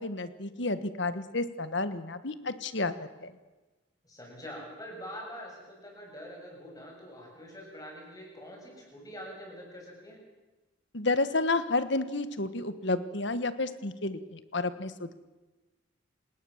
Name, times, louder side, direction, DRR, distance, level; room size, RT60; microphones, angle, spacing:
voice 1, 0.0-3.3 10.9-15.1, left 2 dB, 60° left, 12 dB, 1.5 m, -31 dB
voice 2, 4.0-10.2, equal, 20° left, 0 dB, 7.8 m, -45 dB
29.0 x 19.5 x 7.3 m, 1.2 s
head